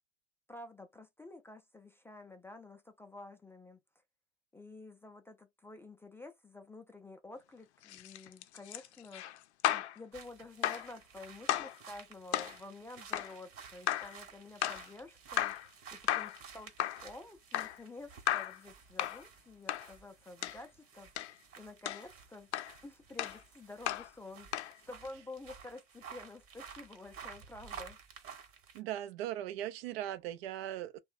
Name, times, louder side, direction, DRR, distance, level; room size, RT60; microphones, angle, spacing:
voice 1, 0.5-3.8 4.5-9.4 9.7-22.5 22.8-24.6 24.9-28.0, left 2 dB, 5° left, 0.4 m, -50 dB
sound 1, 7.8-10.0 10.6-10.9 11.5-11.8 12.3-12.6 13.1-13.3 13.9-14.2 14.6-14.9 15.4-15.7 16.1-16.4 16.8-17.1 17.5-17.8 18.3-18.6 19.0-19.2 19.7-19.9 20.4-20.6 21.2-21.3 21.8-22.1 22.5-22.7 23.2-23.4 23.9-24.1 24.5-24.7, left 12 dB, 75° left, 0.5 m, -34 dB
sound 2, 10.1-28.8, right 6 dB, 40° right, 1.1 m, -53 dB
voice 2, 28.7-31.0, right 12 dB, 60° right, 0.5 m, -39 dB
2.9 x 2.2 x 2.4 m
hypercardioid pair, 90°, 34 cm